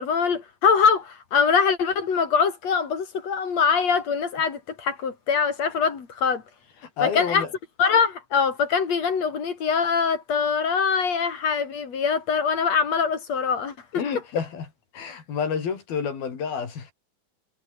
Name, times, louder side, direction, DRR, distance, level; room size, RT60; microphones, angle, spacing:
voice 1, 0.0-6.4 7.0-7.4 7.8-13.7, left 6 dB, 50° left, 3.8 m, -23 dB
voice 2, 7.0-7.5 13.9-14.7 14.9-16.9, left 6 dB, 80° left, 6.1 m, -29 dB
omnidirectional pair, 4.2 m